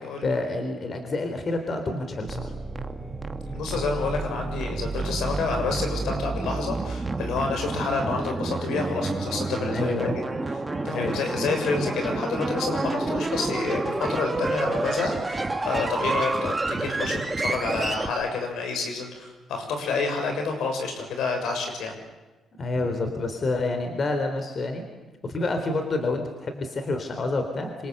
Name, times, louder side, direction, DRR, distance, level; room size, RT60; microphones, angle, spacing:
voice 1, 0.2-2.5 9.7-10.2 10.9-11.2 22.6-24.8 25.2-27.9, left 2 dB, 45° left, 6 dB, 3.9 m, -28 dB
sound 1, 2.2-18.1, right 3 dB, 20° right, 2.1 m, -29 dB
voice 2, 3.5-10.2 10.8-21.9, left 4 dB, 80° left, 4 dB, 7.0 m, -29 dB
26.5 x 26.0 x 8.2 m, 1.2 s
cardioid pair, 90°, 0 cm